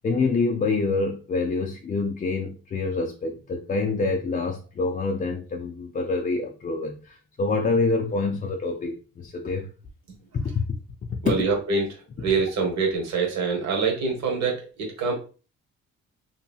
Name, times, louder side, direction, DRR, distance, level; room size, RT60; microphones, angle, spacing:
voice 1, 0.0-9.7 10.3-10.5 11.1-11.2, left 3 dB, 30° left, 2 dB, 0.4 m, -26 dB
voice 2, 11.2-15.1, right 4 dB, 65° right, 1 dB, 1.1 m, -25 dB
2.7 x 2.7 x 2.3 m, 0.35 s
cardioid pair, 90°, 30 cm